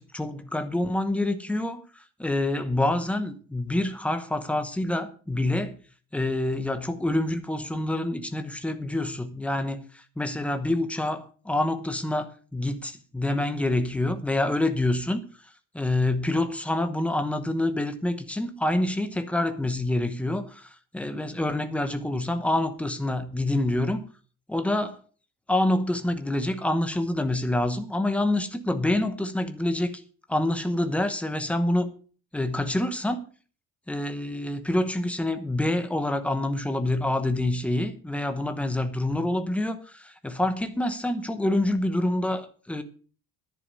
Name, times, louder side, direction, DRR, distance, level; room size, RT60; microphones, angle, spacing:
voice 1, 0.0-5.8 6.1-12.3 12.5-15.2 15.7-24.0 24.5-25.0 25.5-30.0 30.3-31.9 32.3-33.2 33.9-42.8, left 1 dB, 5° left, 8 dB, 0.9 m, -27 dB
10.5 x 10.0 x 5.5 m, 0.40 s
cardioid pair, 175°, 32 cm